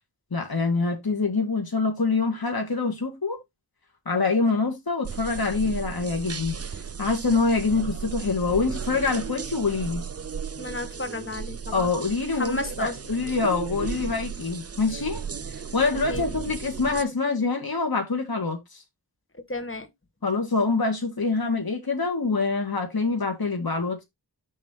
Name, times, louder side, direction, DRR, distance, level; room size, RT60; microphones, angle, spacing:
voice 1, 0.3-3.4 4.1-6.6 7.0-10.0 11.7-15.2 15.7-18.8 20.2-24.0, left 4 dB, 65° left, 1.9 m, -25 dB
sound 1, 5.0-17.0, right 6 dB, 40° right, 0.5 m, -35 dB
voice 2, 10.6-11.9 12.4-12.9 16.1-16.2 19.5-19.9, left 2 dB, 30° left, 1.6 m, -32 dB
7.4 x 3.2 x 5.9 m
wide cardioid pair, 50°, 39 cm